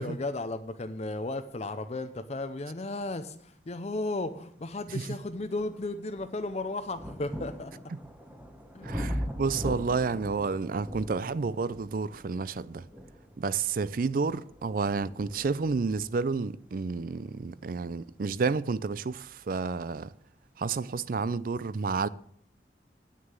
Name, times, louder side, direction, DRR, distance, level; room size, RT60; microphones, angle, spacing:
voice 1, 0.0-7.7 8.7-8.9, left 2 dB, 35° left, 0.5 m, -34 dB
sound 1, 4.9-19.4 20.3-20.4, equal, 10° right, 1.0 m, -42 dB
voice 2, 8.8-12.8 13.4-20.1 20.6-22.1, right 4 dB, 50° right, 0.4 m, -30 dB
9.1 x 6.5 x 8.0 m
head